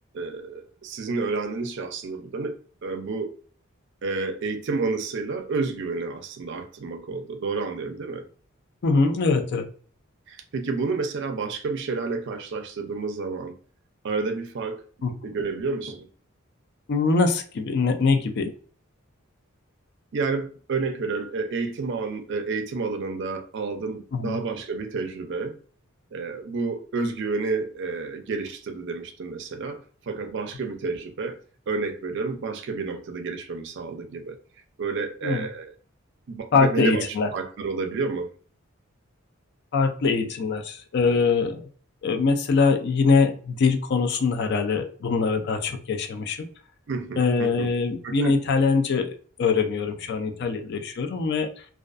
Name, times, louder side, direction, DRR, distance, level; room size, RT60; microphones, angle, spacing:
voice 1, 0.1-3.3 4.0-8.3 10.3-13.6 14.0-14.8 15.2-16.1 20.1-25.6 26.1-31.4 31.7-34.4 34.8-35.7 36.3-38.3 46.9-47.7 48.0-48.3, right 4 dB, 55° right, 0.4 m, -30 dB
voice 2, 8.8-9.7 15.0-15.1 16.9-18.5 24.1-24.4 35.2-35.5 36.5-37.3 39.7-41.7 42.0-46.5 47.2-51.5, left 4 dB, 55° left, 0.4 m, -23 dB
2.4 x 2.3 x 2.3 m
head